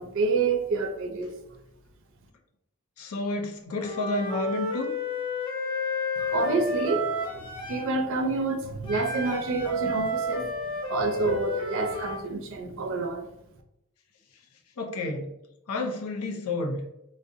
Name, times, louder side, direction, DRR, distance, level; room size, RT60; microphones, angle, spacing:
voice 1, 0.0-1.3 6.2-10.5 10.9-13.3, right 3 dB, 65° right, 0.4 m, -28 dB
voice 2, 3.0-4.9 14.8-15.3 15.7-16.8, left 2 dB, 90° left, 0.5 m, -30 dB
Wind instrument woodwind instrument, 3.8-7.9 8.8-12.2, left 1 dB, 25° left, 0.4 m, -31 dB
2.5 x 2.0 x 2.5 m
head